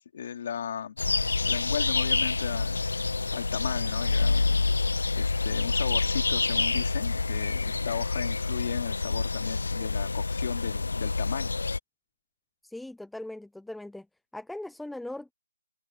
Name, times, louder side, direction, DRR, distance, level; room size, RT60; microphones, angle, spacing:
voice 1, 0.1-1.0 1.4-2.8 3.3-11.5, left 8 dB, 45° left, 2.7 m, -36 dB
sound 1, 1.0-11.8, left 3 dB, 80° left, 0.4 m, -27 dB
voice 2, 12.6-14.1 14.3-15.3, left 1 dB, ahead, 0.4 m, -39 dB
open air
figure-of-eight pair, 160°, 0 cm